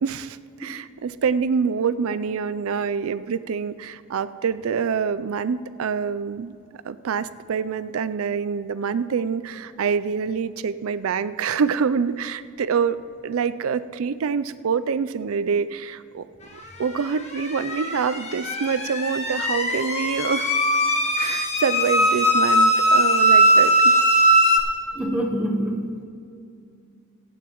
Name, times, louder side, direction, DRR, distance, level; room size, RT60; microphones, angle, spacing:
voice 1, 0.0-6.5 6.8-16.2 16.5-20.5 21.2-24.0, right 6 dB, 70° right, 14 dB, 0.4 m, -26 dB
sound 1, 17.0-24.6, right 1 dB, 30° left, 1.4 m, -20 dB
voice 2, 24.9-26.0, right 1 dB, 5° right, 1 dB, 1.0 m, -25 dB
23.5 x 8.9 x 3.0 m, 2.3 s
head